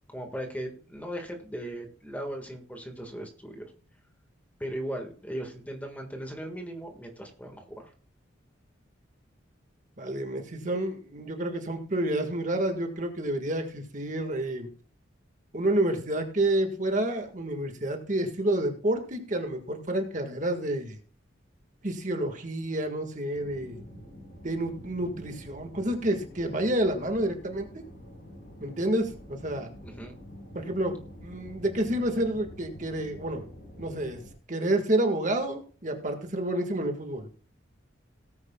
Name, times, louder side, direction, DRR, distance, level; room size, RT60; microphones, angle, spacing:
voice 1, 0.1-3.7 4.6-7.9 29.8-30.1, right 1 dB, 10° left, 3 dB, 1.7 m, -38 dB
voice 2, 10.0-14.7 15.5-21.0 21.8-23.8 24.4-27.8 28.6-29.7 30.5-31.0 31.2-33.5 33.8-34.2 34.5-37.3, right 1 dB, 40° right, 4 dB, 1.7 m, -29 dB
sound 1, 23.3-34.3, equal, 45° left, 5.4 m, -47 dB
18.5 x 9.6 x 2.3 m, 0.40 s
head